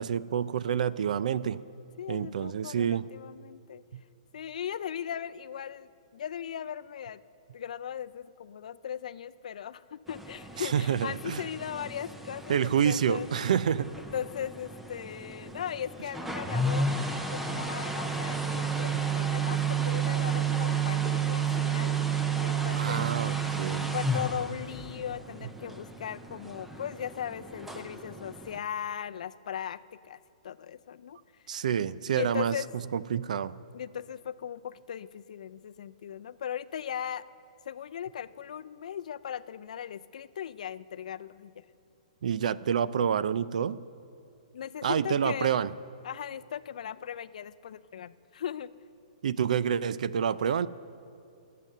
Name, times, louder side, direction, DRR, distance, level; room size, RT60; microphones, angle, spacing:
voice 1, 0.0-1.6 2.1-3.0 3.9-4.0 10.6-11.4 12.5-13.9 22.7-23.9 31.5-32.5 32.9-33.5 42.2-43.8 44.8-45.7 49.2-50.7, right 8 dB, 65° right, 17 dB, 0.4 m, -28 dB
voice 2, 0.6-1.0 2.0-3.8 4.3-7.2 7.5-13.5 14.1-16.9 17.3-21.9 22.4-23.4 23.9-29.8 30.0-30.2 30.4-31.2 32.1-32.7 33.7-37.2 37.7-41.6 44.5-45.5 46.0-48.7, left 9 dB, 65° left, 15 dB, 0.4 m, -38 dB
sound 1, 10.1-28.6, right 5 dB, 5° right, 0.5 m, -32 dB
21.5 x 7.6 x 6.6 m, 2.5 s
hypercardioid pair, 165°, 4 cm